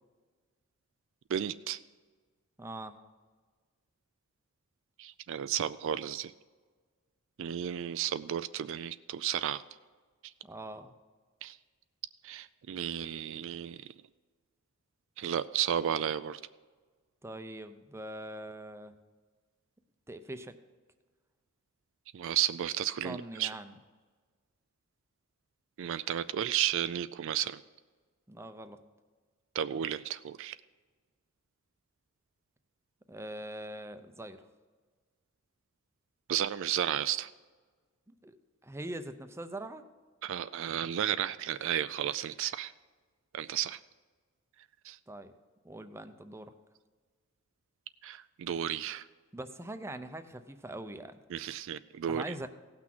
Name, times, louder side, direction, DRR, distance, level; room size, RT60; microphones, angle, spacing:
voice 1, 1.3-1.8 5.0-6.3 7.4-9.6 11.4-11.6 12.2-13.9 15.2-16.4 22.1-23.5 25.8-27.6 29.6-30.6 36.3-37.3 40.2-42.7 43.3-43.8 44.8-45.0 48.0-49.1 51.3-52.3, right 10 dB, 65° right, 14 dB, 0.3 m, -33 dB
voice 2, 2.6-3.0 10.4-10.9 17.2-18.9 20.1-20.6 23.0-23.8 28.3-28.8 33.1-34.4 38.1-38.4 38.6-39.8 45.1-45.3 45.6-46.5 49.3-51.2 52.1-52.5, right 1 dB, 15° right, 9 dB, 0.6 m, -42 dB
16.5 x 6.1 x 6.0 m, 1.5 s
head